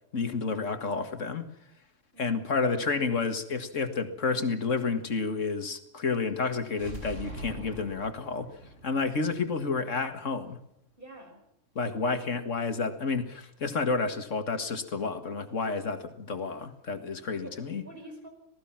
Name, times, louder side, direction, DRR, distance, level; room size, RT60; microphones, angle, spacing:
voice 1, 0.1-1.5 2.2-8.5 8.8-10.6 11.8-17.8, left 4 dB, 85° left, 8 dB, 2.2 m, -30 dB
voice 2, 2.1-2.4 11.0-11.4 17.4-18.3, right 1 dB, 45° right, 4 dB, 5.6 m, -47 dB
sound 1, 6.7-10.5, right 1 dB, 90° right, 5.9 m, -44 dB
27.0 x 18.5 x 5.9 m, 0.71 s
omnidirectional pair, 1.3 m